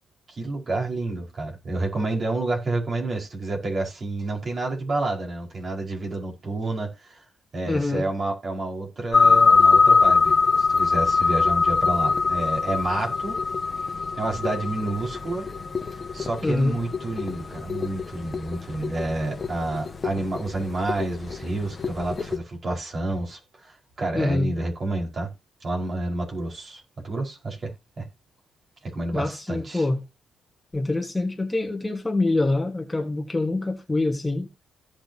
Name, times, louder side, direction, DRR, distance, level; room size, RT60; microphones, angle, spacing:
voice 1, 0.3-7.2 7.5-13.4 14.2-15.5 16.1-25.3 25.6-27.7 28.0-28.1 28.8-29.9, right 2 dB, 40° right, 5.1 m, -29 dB
voice 2, 7.7-8.1 16.4-16.8 24.1-24.5 29.1-30.0 30.7-34.5, left 2 dB, 15° left, 1.6 m, -25 dB
sound 1, 9.1-22.4, left 4 dB, 35° left, 1.2 m, -23 dB
16.0 x 6.3 x 2.9 m
cardioid pair, 90°, 0 cm